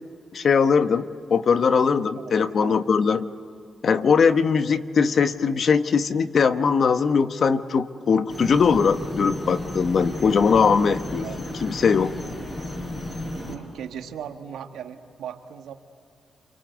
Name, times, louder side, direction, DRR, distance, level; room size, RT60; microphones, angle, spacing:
voice 1, 0.3-3.3 3.8-11.2 11.6-12.1, left 5 dB, 60° left, 10 dB, 1.1 m, -20 dB
voice 2, 1.8-2.8 11.2-11.4 13.5-15.7, right 8 dB, 85° right, 6 dB, 1.5 m, -38 dB
sound 1, 8.3-13.6, left 1 dB, 25° left, 7.3 m, -33 dB
29.0 x 24.0 x 8.1 m, 2.5 s
cardioid pair, 70°, 0 cm